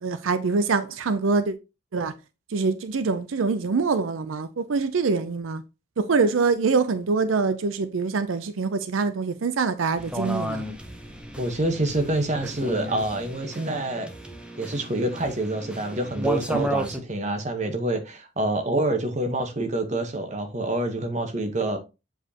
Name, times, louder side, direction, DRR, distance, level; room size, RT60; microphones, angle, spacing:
voice 1, 0.0-1.5 1.9-2.1 2.5-5.6 6.0-10.7 16.5-16.6, right 4 dB, 85° right, 0.5 m, -24 dB
sound 1, 10.0-17.0, right 1 dB, 5° right, 0.7 m, -33 dB
voice 2, 11.4-14.1 14.6-21.8, right 1 dB, 35° right, 1.1 m, -27 dB
7.8 x 4.8 x 2.9 m
head